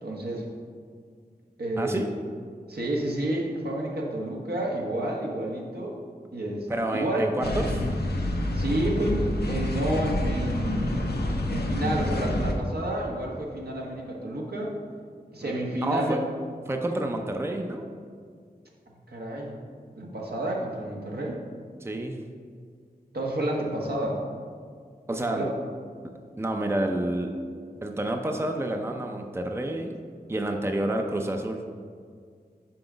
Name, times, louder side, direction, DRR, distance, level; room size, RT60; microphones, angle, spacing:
voice 1, 0.0-0.4 1.6-2.0 2.7-6.0 6.3-7.3 8.5-11.1 11.5-14.7 15.3-16.2 19.1-19.5 19.9-21.4 23.1-24.2 25.3-25.5, right 1 dB, 75° right, -2 dB, 1.3 m, -30 dB
voice 2, 1.8-2.1 6.7-7.8 15.4-16.2 16.7-17.9 21.8-22.2 25.1-25.5 26.4-27.3 27.8-29.9 30.3-31.6, right 1 dB, 15° right, 3 dB, 0.6 m, -29 dB
sound 1, 7.4-12.5, left 1 dB, 75° left, 0.8 m, -27 dB
6.0 x 4.9 x 5.0 m, 2.1 s
wide cardioid pair, 50°, 17 cm